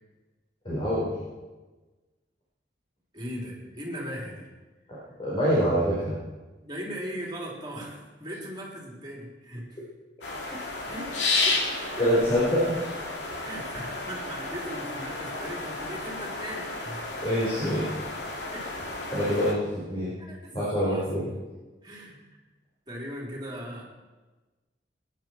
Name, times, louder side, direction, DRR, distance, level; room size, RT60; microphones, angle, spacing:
voice 1, 0.6-1.1 4.9-6.1 10.4-10.6 12.0-13.0 17.2-17.9 19.1-20.1 20.5-21.3, equal, 30° left, -8 dB, 4.6 m, -26 dB
voice 2, 3.1-4.4 6.6-9.9 10.9-12.1 13.4-17.2 17.6-17.8 18.5-18.7 20.2-20.6 20.9-21.1 21.8-22.2 22.9-23.8, equal, 25° right, -2 dB, 3.8 m, -38 dB
sound 1, 10.2-19.5, left 3 dB, 90° left, 2.4 m, -32 dB
21.5 x 10.5 x 4.6 m, 1.2 s
head